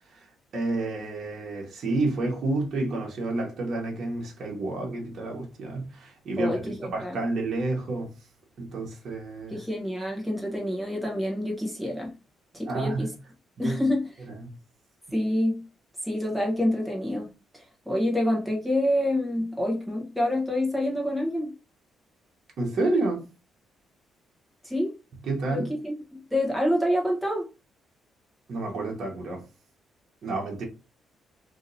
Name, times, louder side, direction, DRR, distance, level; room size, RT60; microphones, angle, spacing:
voice 1, 0.5-8.1 8.6-9.6 12.6-13.1 13.6-13.8 14.3-14.5 22.6-23.3 25.2-25.7 28.5-29.4 30.2-30.6, right 2 dB, 55° right, 1.1 m, -30 dB
voice 2, 6.4-7.2 9.5-12.1 12.5-13.1 13.6-14.0 15.1-15.6 16.0-17.3 17.5-21.5 24.6-24.9 25.5-27.5, left 1 dB, ahead, 1.0 m, -27 dB
2.8 x 2.7 x 4.0 m
cardioid pair, 125°, 0 cm